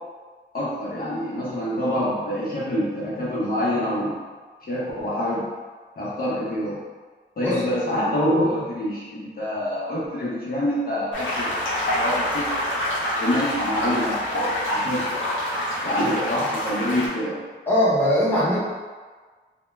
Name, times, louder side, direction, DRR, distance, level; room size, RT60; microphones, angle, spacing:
voice 1, 0.5-4.2 4.6-5.5 6.0-6.8 7.4-12.5 13.2-15.2 15.8-17.4, equal, 50° left, -8 dB, 0.6 m, -26 dB
Rivers And Streams Brook, 11.1-17.1, left 1 dB, 80° left, 0.7 m, -26 dB
voice 2, 17.7-18.6, equal, 10° left, -9 dB, 0.8 m, -20 dB
2.2 x 2.1 x 3.0 m, 1.4 s
wide cardioid pair, 110°, 19 cm